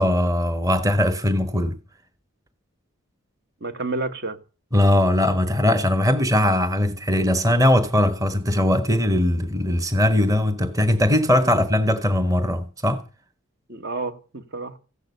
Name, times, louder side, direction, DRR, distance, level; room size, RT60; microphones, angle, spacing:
voice 1, 0.0-1.8 4.7-13.0, left 1 dB, 15° right, 1.3 m, -20 dB
voice 2, 3.6-4.4 11.4-11.5 13.7-14.8, right 3 dB, 50° right, 1.6 m, -30 dB
15.0 x 11.5 x 6.7 m
head